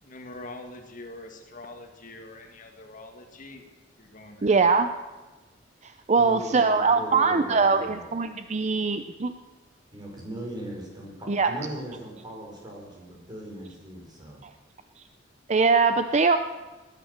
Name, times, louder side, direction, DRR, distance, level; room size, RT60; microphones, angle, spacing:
voice 1, 0.0-3.6 4.0-4.7, left 2 dB, 45° left, 4 dB, 1.9 m, -44 dB
voice 2, 4.4-4.9 5.8-9.3 11.3-11.5 15.5-16.4, right 4 dB, 40° right, 9 dB, 0.6 m, -22 dB
voice 3, 6.1-8.1 9.9-14.4, right 1 dB, 25° right, -1 dB, 5.0 m, -39 dB
19.5 x 11.0 x 6.6 m, 1.2 s
head